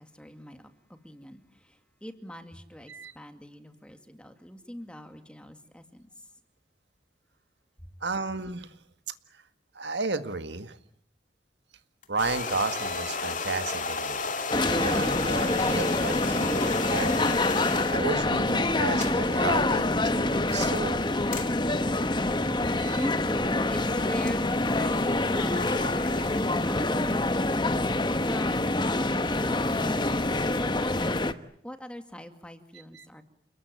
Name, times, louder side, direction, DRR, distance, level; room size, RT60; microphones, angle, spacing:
voice 1, 0.0-6.1 21.9-22.0 22.7-30.2 30.5-31.2 31.6-33.2, equal, 5° left, 2.2 m, -42 dB
voice 2, 8.0-8.8 9.3-9.4 9.7-10.8 12.1-14.2 14.6-21.1 22.8-23.1 32.9-33.1, right 3 dB, 70° right, 1.8 m, -33 dB
sound 1, 12.0-18.1 18.7-29.1, left 4 dB, 45° left, 2.3 m, -36 dB
sound 2, 14.5-31.3, left 2 dB, 25° left, 1.2 m, -26 dB
29.5 x 20.5 x 9.3 m
head